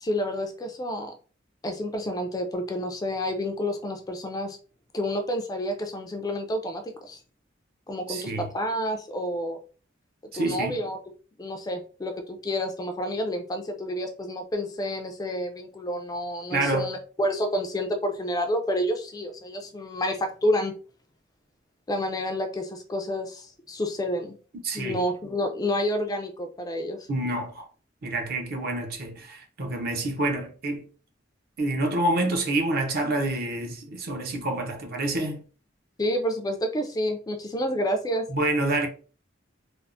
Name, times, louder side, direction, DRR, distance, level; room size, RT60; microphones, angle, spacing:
voice 1, 0.0-1.1 1.6-4.6 4.9-7.2 7.9-9.6 10.3-11.0 11.4-20.8 21.9-24.4 24.7-27.1 36.0-38.3, equal, 20° left, 0.3 m, -29 dB
voice 2, 8.1-8.5 10.3-10.8 16.5-16.9 24.6-25.0 27.1-27.6 28.0-30.8 31.6-35.4 38.3-38.9, right 2 dB, 50° right, 0.6 m, -27 dB
3.3 x 2.0 x 2.5 m
head